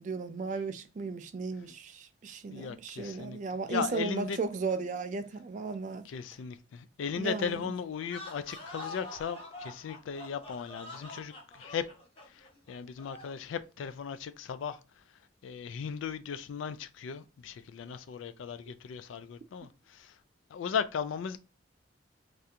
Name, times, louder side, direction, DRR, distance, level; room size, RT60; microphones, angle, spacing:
voice 1, 0.0-6.1 7.2-7.7, right 4 dB, 40° right, 0.3 m, -35 dB
voice 2, 2.5-4.4 6.0-11.9 12.3-14.8 15.4-20.2 20.5-21.4, left 7 dB, 85° left, 0.3 m, -37 dB
sound 1, 8.0-13.4, left 2 dB, 30° left, 0.8 m, -46 dB
3.3 x 2.4 x 2.8 m
head